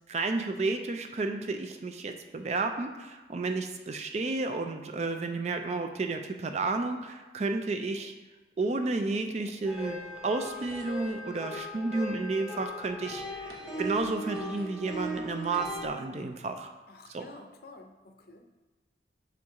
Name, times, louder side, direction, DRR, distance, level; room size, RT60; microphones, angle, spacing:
voice 1, 0.1-8.1 8.6-16.7 17.1-17.2, right 3 dB, 35° right, 6 dB, 0.4 m, -32 dB
sound 1, 9.7-15.9, equal, 5° right, 0.8 m, -38 dB
sound 2, 10.4-11.2 12.4-12.5 12.9-14.8 15.2-16.2, right 2 dB, 55° right, 0.9 m, -54 dB
voice 2, 16.9-18.4, left 2 dB, 55° left, 5 dB, 0.6 m, -50 dB
6.2 x 4.4 x 3.6 m, 1.2 s
head